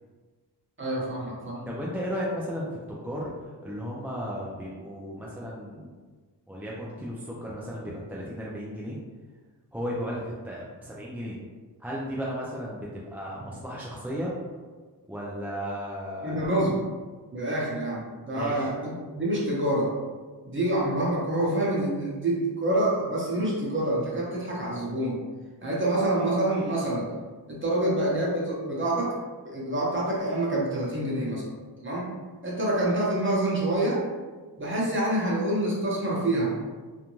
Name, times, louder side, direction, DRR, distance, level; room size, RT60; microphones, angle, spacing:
voice 1, 0.8-1.7 16.2-16.8 17.3-19.9 20.4-25.2 25.6-27.1 27.5-29.1 29.4-31.4 31.8-32.1 32.4-34.0 34.6-36.6, right 1 dB, 30° right, -5 dB, 0.9 m, -27 dB
voice 2, 1.7-3.3 3.6-5.9 6.5-9.0 9.7-11.4 11.8-14.3 15.1-16.5 18.3-18.7, equal, 5° right, -5 dB, 0.4 m, -34 dB
2.5 x 2.1 x 3.0 m, 1.4 s
cardioid pair, 70°, 40 cm